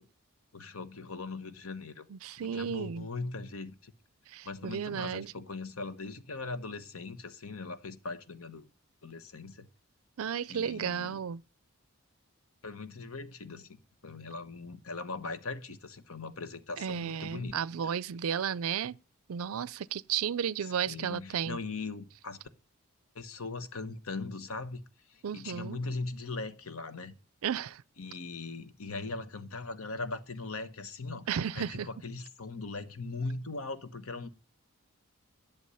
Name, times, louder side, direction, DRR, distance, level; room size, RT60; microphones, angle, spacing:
voice 1, 0.5-2.1 2.4-3.9 4.4-8.7 9.0-9.7 10.5-11.2 12.6-17.9 20.6-22.4 23.1-27.2 28.0-34.3, left 3 dB, 75° left, 1.2 m, -40 dB
voice 2, 2.1-3.1 4.3-5.3 10.2-11.4 16.8-19.0 19.3-21.6 25.2-25.8 27.4-27.8 31.3-31.9, right 8 dB, 75° right, 0.4 m, -33 dB
11.5 x 7.1 x 5.5 m
head